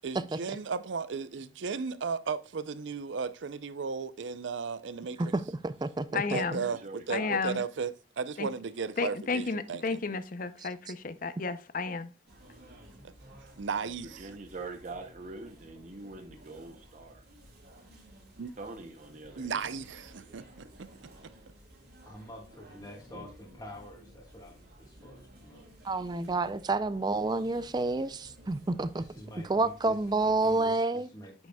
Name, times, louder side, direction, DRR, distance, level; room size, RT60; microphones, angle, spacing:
voice 1, 0.0-5.2 6.1-6.8 7.1-10.0 13.6-14.3 18.4-18.5 19.4-20.9, right 5 dB, 85° right, 0.5 m, -35 dB
voice 2, 5.2-6.2 25.8-29.0 29.5-31.1, right 3 dB, 20° right, 0.4 m, -29 dB
voice 3, 6.1-6.7 7.1-7.6 8.4-8.5 9.0-12.1, left 4 dB, 45° left, 0.6 m, -32 dB
voice 4, 6.7-7.4 14.2-17.2 18.6-19.7 23.1-23.3, right 3 dB, 40° right, 0.7 m, -44 dB
sound 1, 12.3-30.7, right 1 dB, 60° right, 2.8 m, -54 dB
voice 5, 22.0-25.8 28.9-30.0 30.2-31.3, left 1 dB, 20° left, 1.5 m, -48 dB
8.6 x 6.2 x 2.2 m
head